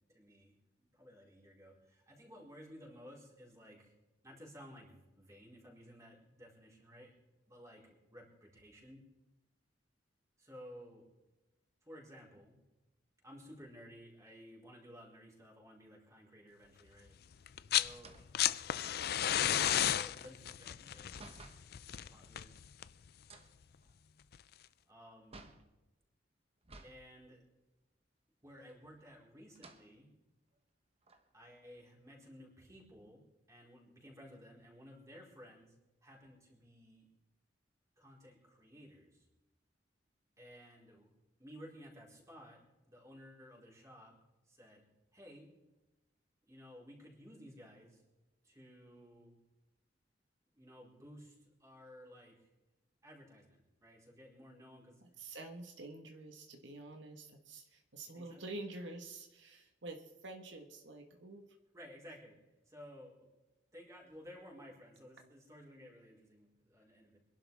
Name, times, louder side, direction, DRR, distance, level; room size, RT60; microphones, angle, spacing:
voice 1, 0.0-3.9 4.2-7.1 7.5-9.0 10.4-11.1 11.8-12.5 13.2-17.1 17.7-18.2 19.1-21.1 21.9-22.5 24.9-25.6 26.8-27.4 28.4-30.1 31.3-33.2 33.5-35.7 36.0-37.1 38.0-39.3 40.4-41.1 41.4-44.2 44.5-44.8 45.1-45.5 46.5-48.0 48.4-49.4 50.5-52.5 53.0-55.0 58.1-58.4 61.7-62.4 62.7-63.3 63.7-67.2, equal, 15° right, -3 dB, 4.5 m, -55 dB
sound 1, 17.5-17.9 18.2-23.1 24.3-24.4, left 11 dB, 55° left, 0.5 m, -33 dB
sound 2, 17.9-21.7 23.2-25.7 26.6-27.1 27.4-27.5 28.6-29.1 29.5-29.9 30.5-30.6 31.0-32.4, right 2 dB, 35° right, 1.4 m, -57 dB
voice 2, 55.2-61.4, right 2 dB, 80° right, 3 dB, 1.5 m, -48 dB
25.5 x 11.5 x 3.6 m, 1.0 s
head